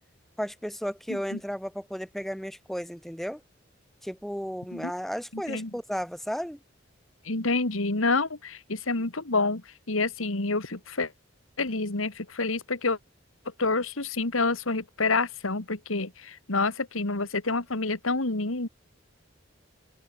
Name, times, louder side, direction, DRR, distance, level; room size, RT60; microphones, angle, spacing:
voice 1, 0.4-3.4 4.0-6.6, equal, ahead, 2.1 m, -34 dB
voice 2, 7.3-9.6 9.9-11.1 11.6-13.0 13.6-16.1 16.5-18.7, left 3 dB, 85° left, 2.2 m, -27 dB
open air
head